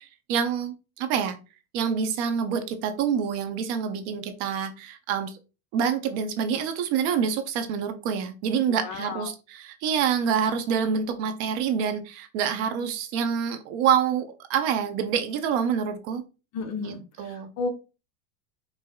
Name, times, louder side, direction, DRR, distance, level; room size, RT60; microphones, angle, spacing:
voice 1, 0.0-1.4 1.7-5.4 5.7-16.2 16.8-17.5, right 7 dB, 50° right, 0.7 m, -27 dB
voice 2, 8.7-9.3 16.5-17.7, left 4 dB, 40° left, 0.7 m, -33 dB
4.7 x 2.8 x 2.2 m
supercardioid pair, 130°, 42 cm